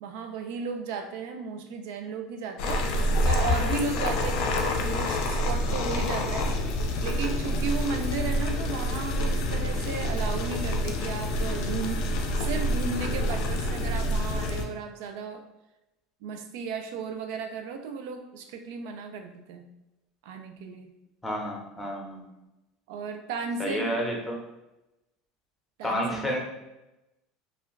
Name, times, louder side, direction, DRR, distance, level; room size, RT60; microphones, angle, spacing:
voice 1, 0.0-6.5 7.0-12.1 12.4-15.4 16.2-19.7 20.2-20.9 22.9-23.9 25.8-26.4, right 5 dB, 75° right, 6 dB, 0.4 m, -35 dB
sound 1, 2.6-14.6, left 1 dB, 65° left, 0.4 m, -27 dB
voice 2, 21.2-22.2 23.6-24.4 25.8-26.4, equal, 10° left, -1 dB, 0.7 m, -30 dB
2.4 x 2.2 x 3.1 m, 0.97 s
supercardioid pair, 125°, 0 cm